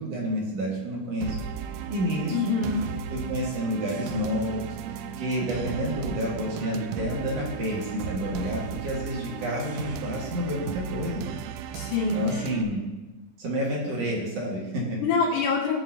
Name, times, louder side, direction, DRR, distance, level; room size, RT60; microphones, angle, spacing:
voice 1, 0.0-1.4 1.9-2.6 3.1-4.8 5.2-11.3 12.1-12.8 13.4-15.0, equal, 50° right, -3 dB, 2.3 m, -29 dB
sound 1, 1.2-12.6, right 8 dB, 80° right, 2.3 m, -35 dB
voice 2, 2.3-2.8 11.7-12.5 15.0-15.8, left 4 dB, 80° left, -3 dB, 4.2 m, -25 dB
19.0 x 6.9 x 2.8 m, 1.1 s
omnidirectional pair, 4.8 m